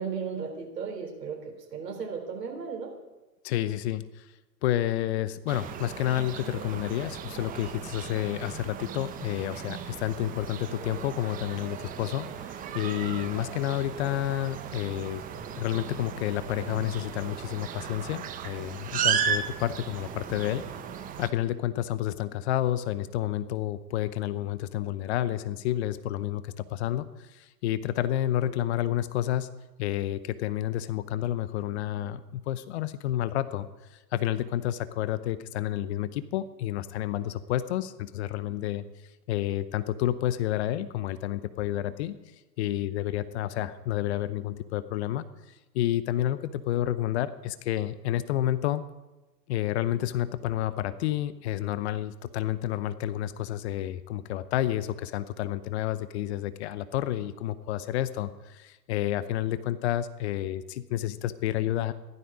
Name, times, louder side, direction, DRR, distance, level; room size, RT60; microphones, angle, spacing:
voice 1, 0.0-2.9 28.3-28.7, right 6 dB, 75° right, 4 dB, 3.9 m, -36 dB
voice 2, 3.4-4.3 4.6-15.2 15.6-20.6 21.2-29.5 29.8-38.8 39.3-42.2 42.6-48.8 49.5-61.9, left 12 dB, 40° left, 14 dB, 0.8 m, -30 dB
sound 1, 5.5-21.3, right 8 dB, 15° right, 0.8 m, -35 dB
15.5 x 12.5 x 4.9 m, 1.1 s
hypercardioid pair, 115°, 49 cm